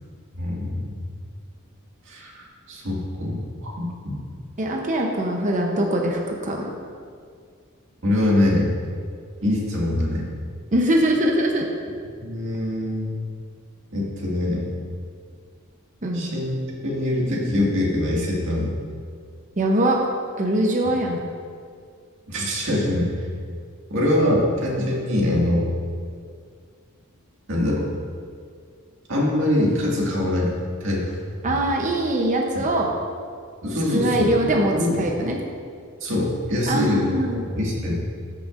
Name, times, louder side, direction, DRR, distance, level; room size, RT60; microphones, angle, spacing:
voice 1, 0.4-1.0 2.1-3.4 3.8-4.2 8.0-8.8 9.4-10.3 12.2-13.1 13.9-14.7 16.1-16.5 16.8-18.7 22.3-23.1 23.9-25.7 27.5-27.8 29.1-31.0 32.5-32.6 33.6-35.0 36.0-38.0, left 1 dB, 65° right, -4 dB, 2.0 m, -23 dB
voice 2, 4.6-6.7 10.7-11.7 16.0-16.3 19.6-20.0 20.4-21.2 31.4-32.9 33.9-35.4 36.7-37.4, right 1 dB, 35° right, 0 dB, 0.8 m, -22 dB
13.5 x 6.2 x 2.5 m, 2.1 s
head